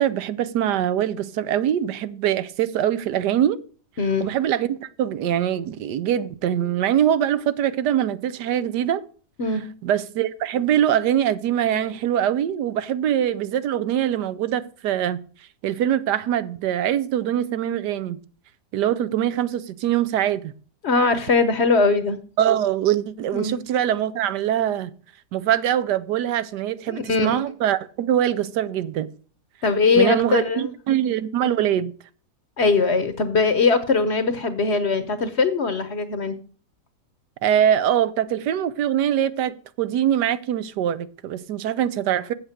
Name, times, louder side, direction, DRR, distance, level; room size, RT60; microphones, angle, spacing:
voice 1, 0.0-3.6 4.2-9.0 9.8-15.2 15.6-18.2 18.7-20.5 22.4-24.9 25.3-29.1 30.0-31.9 37.4-42.3, right 10 dB, 85° right, 1.3 m, -23 dB
voice 2, 4.0-4.3 9.4-9.6 20.8-22.2 23.3-23.5 26.9-27.4 29.6-30.7 32.6-36.4, left 4 dB, 50° left, 1.0 m, -21 dB
8.1 x 7.4 x 6.5 m
omnidirectional pair, 1.8 m